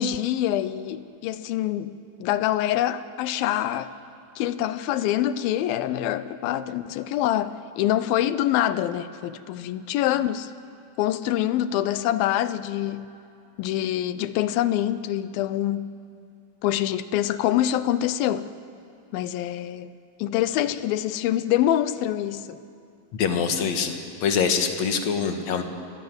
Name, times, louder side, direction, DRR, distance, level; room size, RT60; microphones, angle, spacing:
voice 1, 0.0-3.9 4.4-10.5 11.0-13.1 13.6-15.9 16.6-18.5 19.1-19.9 20.2-22.6, left 12 dB, 85° left, 2.6 m, -25 dB
voice 2, 23.1-25.6, left 6 dB, 55° left, 2.6 m, -24 dB
29.0 x 21.5 x 7.9 m
omnidirectional pair, 4.1 m